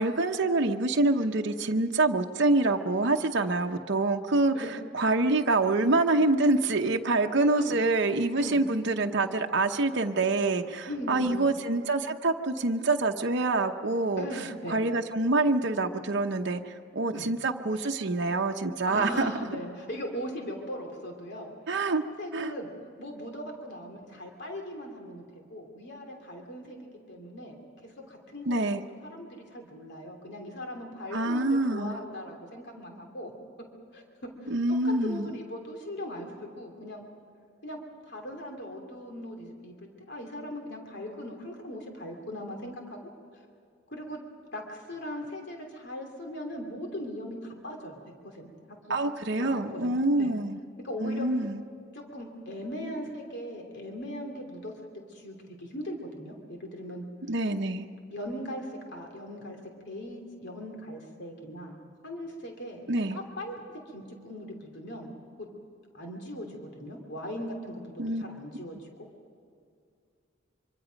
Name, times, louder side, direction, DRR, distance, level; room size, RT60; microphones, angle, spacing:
voice 1, 0.0-4.5 4.9-19.3 21.7-22.0 22.3-22.5 28.5-28.8 31.1-32.0 34.5-35.4 48.9-50.6 51.0-51.6 57.3-57.9 62.9-63.2 68.0-68.2, right 2 dB, 60° right, 3 dB, 0.9 m, -26 dB
voice 2, 7.4-7.7 8.4-8.6 10.9-11.5 14.2-14.8 17.1-17.3 18.8-21.5 22.2-22.7 23.0-25.2 25.5-27.6 27.8-33.3 33.9-34.0 34.4-37.0 37.6-37.8 38.1-43.0 43.9-44.2 44.5-48.0 48.2-49.0 49.4-50.3 50.8-51.3 51.9-54.7 55.1-57.0 58.1-59.6 59.9-61.8 62.0-62.8 63.1-63.6 63.9-65.1 65.4-65.5 65.9-68.9, equal, 60° left, 2 dB, 2.9 m, -39 dB
25.0 x 24.5 x 5.2 m, 2.4 s
head